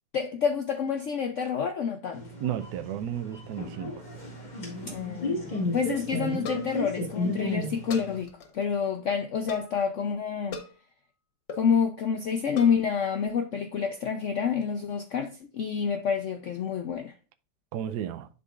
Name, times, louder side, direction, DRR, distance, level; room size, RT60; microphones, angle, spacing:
voice 1, 0.1-2.2 4.8-10.6 11.5-17.1, left 6 dB, 65° left, 0.8 m, -28 dB
sound 1, 2.1-8.2, left 2 dB, 25° left, 2.1 m, -33 dB
voice 2, 2.4-3.9 17.7-18.3, right 10 dB, 75° right, 1.2 m, -33 dB
sound 2, 4.1-4.7 4.9-5.0 5.2-5.3 6.4-6.9 7.9-8.7 9.5-9.8 10.5-10.8 11.5-11.7 12.6-12.9, left 3 dB, 85° left, 1.8 m, -39 dB
11.0 x 4.0 x 2.4 m
omnidirectional pair, 1.9 m